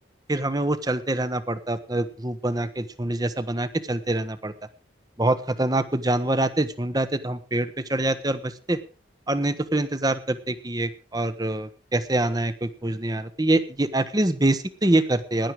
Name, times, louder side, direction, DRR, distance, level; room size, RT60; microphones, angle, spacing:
voice 1, 0.3-4.5 5.2-8.8 9.3-15.5, right 1 dB, 20° right, 13 dB, 1.0 m, -25 dB
17.0 x 11.0 x 4.9 m, 0.36 s
head